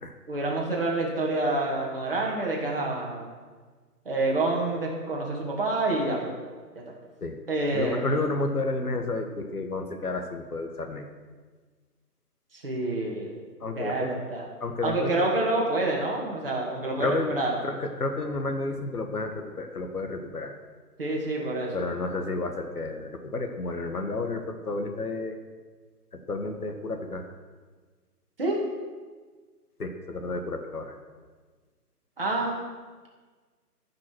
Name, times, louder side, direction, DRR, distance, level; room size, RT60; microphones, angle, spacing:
voice 1, 0.3-3.3 4.1-6.3 6.7-6.8 7.5-8.1 12.5-13.3 13.8-14.5 14.8-17.5 21.0-21.9 28.4-28.6 32.2-32.7, right 2 dB, 35° right, -2 dB, 2.2 m, -28 dB
voice 2, 7.7-11.0 13.6-14.1 14.6-15.2 17.0-17.3 17.6-20.5 21.7-25.4 26.3-27.2 29.8-30.9, left 2 dB, 65° left, 5 dB, 1.6 m, -31 dB
13.5 x 6.1 x 6.1 m, 1.4 s
figure-of-eight pair, 170°, 48 cm